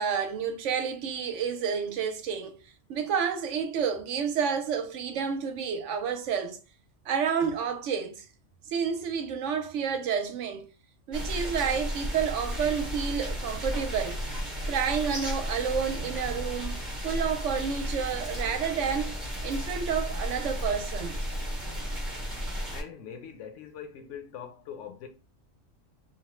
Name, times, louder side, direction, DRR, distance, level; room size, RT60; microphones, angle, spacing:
voice 1, 0.0-6.6 7.1-8.2 8.7-10.7 11.1-14.2 14.7-19.1 19.4-21.2, right 7 dB, 75° right, 0.9 m, -30 dB
sound 1, 11.1-22.8, equal, ahead, 0.7 m, -33 dB
voice 2, 22.7-25.1, left 8 dB, 70° left, 0.9 m, -42 dB
2.9 x 2.1 x 3.0 m
omnidirectional pair, 1.3 m